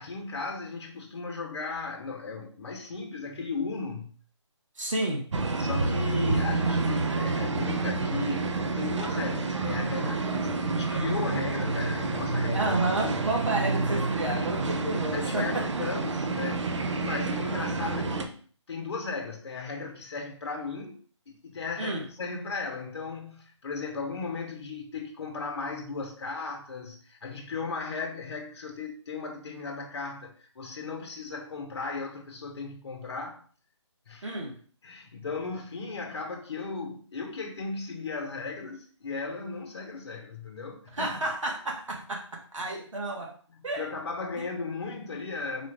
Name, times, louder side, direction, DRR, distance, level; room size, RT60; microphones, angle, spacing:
voice 1, 0.0-4.1 5.6-8.5 8.7-12.7 14.2-14.5 15.1-18.4 18.7-21.0 21.3-33.4 34.1-34.3 34.8-41.2 43.5-45.7, left 4 dB, 60° left, 0.7 m, -36 dB
voice 2, 4.8-5.3 12.5-15.7 21.8-22.0 34.2-34.6 40.9-43.3 43.6-43.8, right 2 dB, 85° right, 1.1 m, -30 dB
sound 1, 5.3-18.3, right 3 dB, 65° right, 0.6 m, -29 dB
3.9 x 2.4 x 3.2 m
figure-of-eight pair, 160°, 16 cm